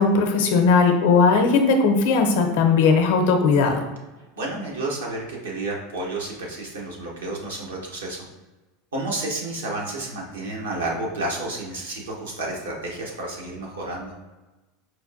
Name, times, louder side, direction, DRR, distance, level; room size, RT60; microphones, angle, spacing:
voice 1, 0.0-3.8, left 4 dB, 70° left, 4 dB, 0.6 m, -18 dB
voice 2, 4.4-8.3 8.9-14.1, right 2 dB, 85° right, -2 dB, 0.9 m, -31 dB
4.5 x 2.2 x 2.5 m, 1.1 s
hypercardioid pair, 90°, 0 cm